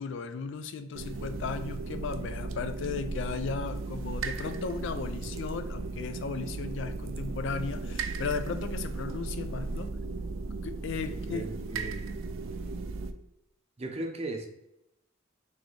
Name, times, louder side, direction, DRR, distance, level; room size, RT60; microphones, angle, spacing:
voice 1, 0.0-9.9 10.6-11.5, left 5 dB, 65° left, 10 dB, 0.4 m, -36 dB
sound 1, 0.9-13.1, right 3 dB, 80° right, 0.4 m, -36 dB
voice 2, 11.3-11.9 13.8-14.5, right 2 dB, 30° right, 2 dB, 0.6 m, -36 dB
3.4 x 3.2 x 4.0 m, 0.85 s
head